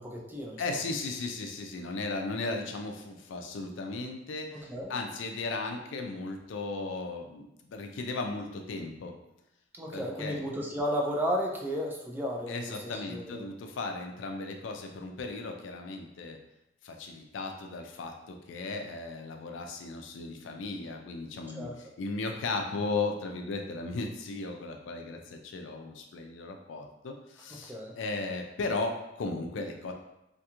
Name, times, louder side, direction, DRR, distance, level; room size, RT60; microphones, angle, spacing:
voice 1, 0.0-0.6 4.5-4.9 9.8-12.7 13.1-13.5 21.5-21.8 27.5-27.9, equal, 10° right, -1 dB, 0.4 m, -33 dB
voice 2, 0.6-9.1 9.9-10.4 12.5-16.4 16.8-29.9, left 3 dB, 70° left, 4 dB, 0.4 m, -36 dB
2.5 x 2.3 x 2.8 m, 0.87 s
head